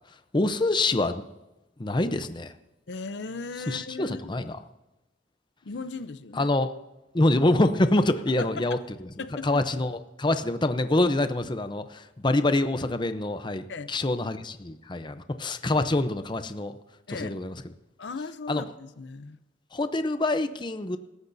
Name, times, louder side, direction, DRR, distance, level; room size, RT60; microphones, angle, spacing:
voice 1, 0.3-1.2 1.8-2.5 3.7-4.6 6.4-6.7 7.1-8.8 9.4-16.7 17.1-17.5 18.5-18.6 19.7-21.0, left 2 dB, 25° left, 0.7 m, -25 dB
voice 2, 2.9-4.2 5.6-6.5 8.4-8.8 9.2-9.6 13.7-13.9 17.1-17.4 18.0-19.4, left 4 dB, 70° left, 0.6 m, -37 dB
25.5 x 13.5 x 2.7 m
head